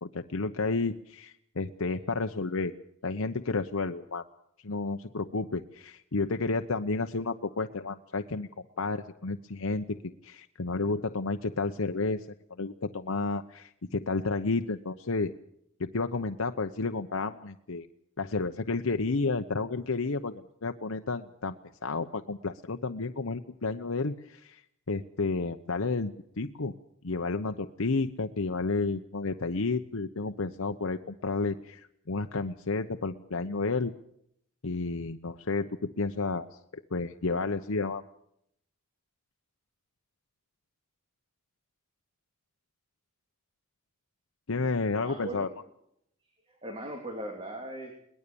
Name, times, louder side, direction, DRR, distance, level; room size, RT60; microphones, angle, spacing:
voice 1, 0.0-2.7 3.0-4.2 4.6-8.5 8.8-12.2 12.6-15.3 15.8-17.9 18.2-21.6 21.8-24.6 24.9-26.7 27.0-33.9 34.6-36.6 36.9-38.0 44.5-45.5, left 3 dB, 90° left, 6 dB, 1.0 m, -31 dB
voice 2, 45.0-45.5 46.5-48.0, right 1 dB, 25° right, 3 dB, 3.3 m, -39 dB
22.5 x 20.0 x 7.0 m, 0.72 s
head